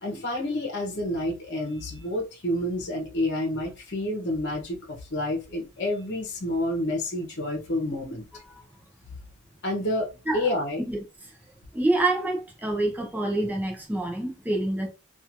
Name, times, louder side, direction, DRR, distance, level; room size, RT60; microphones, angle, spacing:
voice 1, 0.0-8.3 9.6-10.8, left 1 dB, 55° left, 0.9 m, -29 dB
voice 2, 11.7-14.9, right 2 dB, 10° right, 0.7 m, -26 dB
3.0 x 2.5 x 2.5 m
head